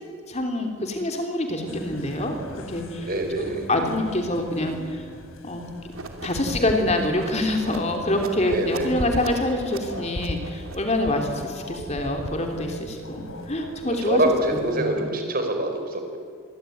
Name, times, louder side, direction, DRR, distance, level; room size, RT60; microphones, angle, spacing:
voice 1, 0.3-3.1 3.4-5.0 5.4-5.7 6.2-14.2 14.7-15.1, left 1 dB, 30° left, 4 dB, 3.3 m, -26 dB
sound 1, 1.7-14.8, left 1 dB, 80° left, 3.0 m, -38 dB
voice 2, 3.0-3.7 8.4-8.9 14.0-16.2, right 1 dB, 45° right, 4 dB, 4.9 m, -25 dB
sound 2, 5.9-11.2, right 3 dB, 85° right, 2.9 m, -40 dB
26.5 x 22.5 x 9.4 m, 2.2 s
head